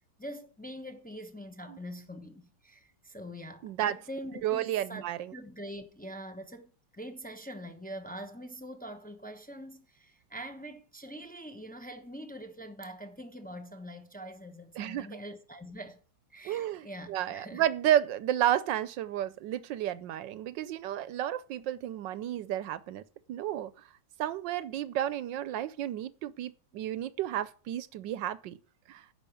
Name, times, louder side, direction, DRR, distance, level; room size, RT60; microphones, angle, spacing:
voice 1, 0.2-5.0 5.3-16.0 16.3-17.6, equal, 10° left, 0.4 m, -44 dB
voice 2, 3.6-4.0 4.4-5.3 14.8-15.1 16.4-23.0 23.3-23.7 24.2-28.6 28.9-29.0, right 11 dB, 70° right, 1.3 m, -31 dB
9.9 x 6.0 x 8.5 m
omnidirectional pair, 2.2 m